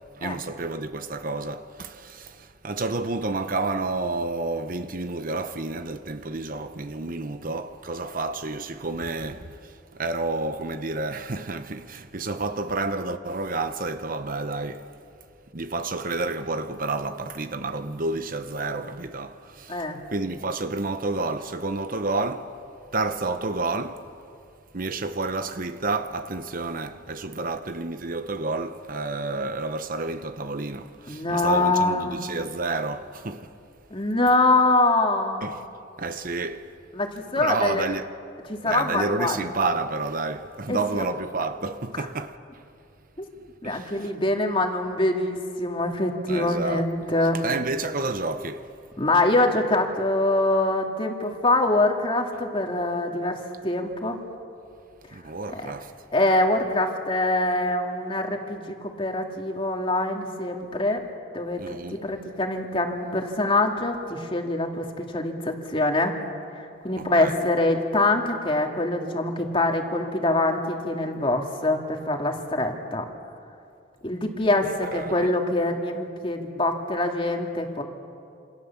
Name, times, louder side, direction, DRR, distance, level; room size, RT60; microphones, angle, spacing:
voice 1, 0.0-14.9 15.5-19.8 20.1-22.5 22.9-24.0 24.7-33.5 35.4-35.6 36.0-36.7 37.3-38.1 38.6-42.4 43.6-44.1 46.3-46.9 47.3-48.7 55.1-55.9 61.6-62.0 67.0-67.4 74.9-75.3, right 3 dB, 45° right, 0.9 m, -30 dB
voice 2, 19.7-20.0 31.1-32.2 33.9-35.5 36.9-37.9 38.5-39.5 40.7-41.1 43.6-47.4 49.0-54.2 55.5-55.7 56.1-61.0 61.3-61.6 61.9-66.2 66.8-73.0 74.0-77.8, left 2 dB, 25° left, 2.4 m, -24 dB
27.5 x 27.5 x 7.3 m
head